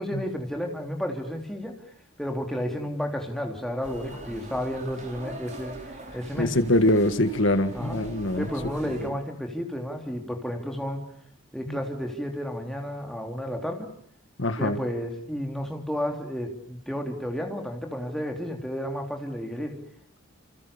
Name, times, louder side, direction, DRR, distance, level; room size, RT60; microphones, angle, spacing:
voice 1, 0.0-1.7 2.2-6.6 7.7-8.0 8.4-11.0 11.5-13.9 14.6-19.8, equal, ahead, 2 dB, 3.3 m, -32 dB
sound 1, 3.8-9.1, right 1 dB, 35° right, 4.8 m, -41 dB
voice 2, 6.4-8.5 11.7-11.8 14.4-14.8, left 1 dB, 60° left, 10 dB, 1.6 m, -23 dB
28.5 x 27.5 x 7.0 m, 0.65 s
head